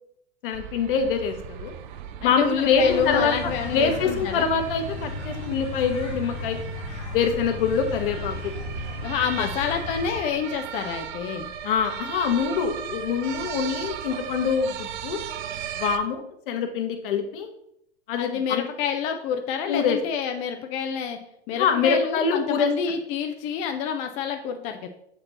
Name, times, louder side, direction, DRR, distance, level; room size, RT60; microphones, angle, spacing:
voice 1, 0.4-1.7 2.2-3.3 3.7-6.6 7.1-8.5 9.4-9.5 11.6-15.2 15.8-17.5 18.1-18.6 19.7-20.0 21.5-22.7, left 6 dB, 55° left, 6 dB, 1.1 m, -24 dB
sound 1, 0.5-16.0, right 9 dB, 45° right, 0.5 m, -37 dB
voice 2, 2.2-4.5 9.0-11.5 18.2-21.2 21.5-24.9, left 7 dB, 20° left, 5 dB, 0.3 m, -28 dB
sound 2, 2.7-10.2, left 2 dB, 85° left, 1.6 m, -35 dB
7.3 x 4.4 x 2.9 m, 0.73 s
figure-of-eight pair, 90°, 33 cm